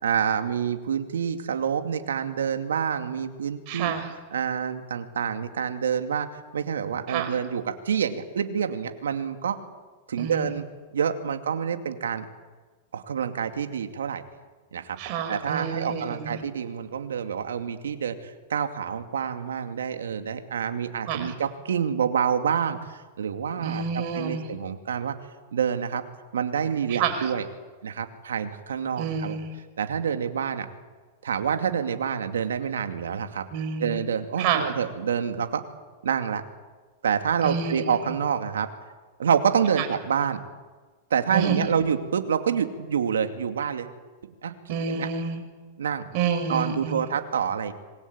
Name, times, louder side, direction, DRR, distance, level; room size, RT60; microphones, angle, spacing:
voice 1, 0.0-3.9 4.3-6.3 6.5-9.6 10.1-10.7 10.9-12.3 12.9-14.2 14.7-15.0 15.3-25.1 25.5-26.0 26.3-27.5 27.8-29.4 29.8-30.7 31.2-33.4 33.8-35.6 36.0-36.4 37.0-38.7 39.2-40.4 41.1-43.9 44.2-44.5 44.9-45.1 45.8-46.1 46.5-47.7, right 7 dB, 85° right, 7 dB, 2.5 m, -27 dB
voice 2, 3.7-4.1 7.1-7.4 10.2-10.6 15.0-16.4 21.1-21.3 23.6-24.5 26.9-27.3 29.0-29.5 33.5-34.0 34.4-34.7 37.4-38.2 39.8-39.9 41.3-41.7 44.7-45.4 46.1-47.0, right 6 dB, 50° right, 6 dB, 6.2 m, -29 dB
27.0 x 22.0 x 8.8 m, 1.4 s
hypercardioid pair, 115°, 0 cm